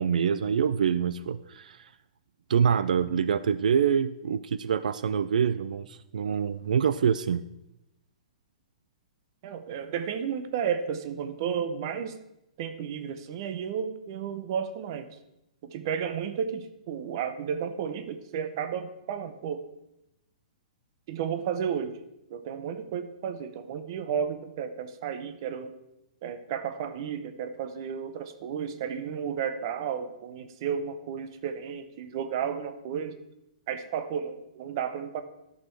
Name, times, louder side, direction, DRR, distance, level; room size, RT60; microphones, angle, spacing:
voice 1, 0.0-1.9 2.5-7.4, right 7 dB, 85° right, 15 dB, 0.4 m, -26 dB
voice 2, 9.4-12.2 12.6-15.1 15.6-19.7 21.1-22.0 22.3-25.7 26.2-33.2 33.7-35.2, right 7 dB, 35° right, 11 dB, 0.7 m, -33 dB
12.0 x 6.5 x 4.6 m, 0.86 s
hypercardioid pair, 175°, 4 cm